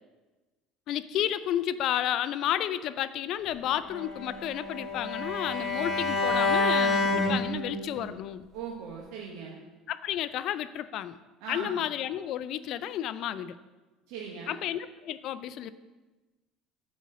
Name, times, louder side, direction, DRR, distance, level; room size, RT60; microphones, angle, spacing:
voice 1, 0.9-8.5 9.9-11.2 11.5-13.6 14.5-15.7, left 11 dB, 55° left, 14 dB, 0.4 m, -32 dB
Bowed string instrument, 3.8-8.0, left 2 dB, 10° left, 2.4 m, -28 dB
voice 2, 8.5-9.6 11.4-11.8 14.1-14.6, right 5 dB, 75° right, -1 dB, 1.0 m, -39 dB
7.6 x 4.2 x 6.2 m, 1.2 s
supercardioid pair, 115°, 0 cm